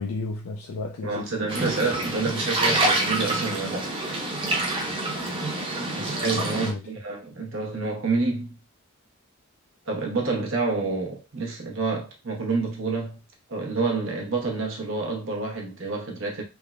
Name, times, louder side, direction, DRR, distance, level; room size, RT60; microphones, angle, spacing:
voice 1, 0.0-1.5 6.3-6.9, left 3 dB, 75° left, 0.4 m, -33 dB
voice 2, 1.0-3.9 5.8-8.6 9.9-13.2 13.5-16.4, right 3 dB, 60° right, 0.8 m, -28 dB
sound 1, 1.5-6.7, right 2 dB, 25° right, 0.5 m, -26 dB
3.3 x 2.1 x 2.4 m
head